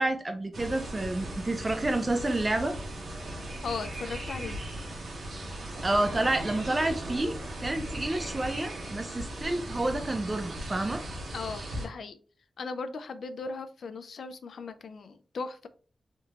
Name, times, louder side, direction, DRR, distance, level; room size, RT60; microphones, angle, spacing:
voice 1, 0.0-2.8 5.8-11.0, right 2 dB, 20° right, 5 dB, 0.4 m, -29 dB
sound 1, 0.5-11.9, right 1 dB, 75° right, 1.2 m, -38 dB
voice 2, 3.6-4.6 11.3-12.2 12.6-15.7, left 4 dB, 70° left, 10 dB, 0.3 m, -37 dB
3.6 x 2.4 x 2.8 m, 0.39 s
wide cardioid pair, 170°, 0 cm